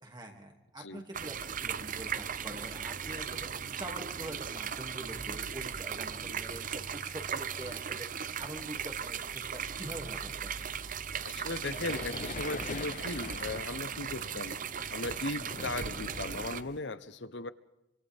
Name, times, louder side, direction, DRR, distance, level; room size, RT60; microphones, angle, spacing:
voice 1, 0.0-8.1 8.4-10.7, right 1 dB, 25° right, 1 dB, 2.6 m, -45 dB
sound 1, 1.1-16.6, right 7 dB, 50° right, 0.8 m, -37 dB
sound 2, 9.7-16.8, left 4 dB, 45° left, 0.6 m, -44 dB
voice 2, 11.2-14.6 14.9-17.5, left 2 dB, 80° left, 13 dB, 1.1 m, -37 dB
27.5 x 26.0 x 3.6 m, 0.94 s
head